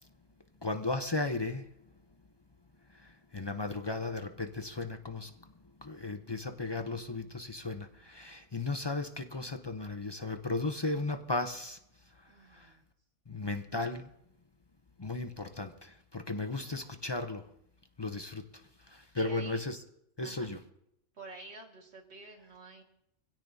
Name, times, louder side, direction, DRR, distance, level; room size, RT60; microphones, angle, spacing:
voice 1, 0.6-1.7 2.9-5.3 5.8-11.8 12.5-12.7 13.3-14.1 15.0-17.5 18.0-19.8 20.2-20.6, left 2 dB, 30° left, 0.5 m, -35 dB
voice 2, 12.3-12.9 16.5-17.1 19.2-19.6 20.2-20.5 21.1-22.8, right 3 dB, 60° right, 2.2 m, -50 dB
25.0 x 16.5 x 2.7 m
omnidirectional pair, 1.3 m